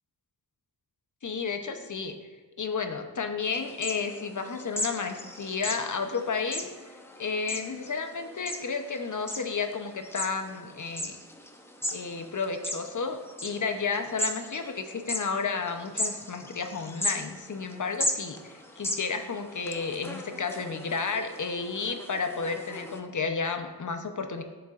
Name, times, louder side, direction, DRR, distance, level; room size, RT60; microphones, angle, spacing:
voice 1, 1.2-2.2 2.6-6.7 7.2-11.2 11.9-24.4, left 5 dB, 50° left, 6 dB, 0.8 m, -32 dB
sound 1, 3.4-23.0, left 1 dB, 5° left, 0.8 m, -37 dB
10.5 x 6.9 x 2.5 m, 1.3 s
cardioid pair, 55°, 39 cm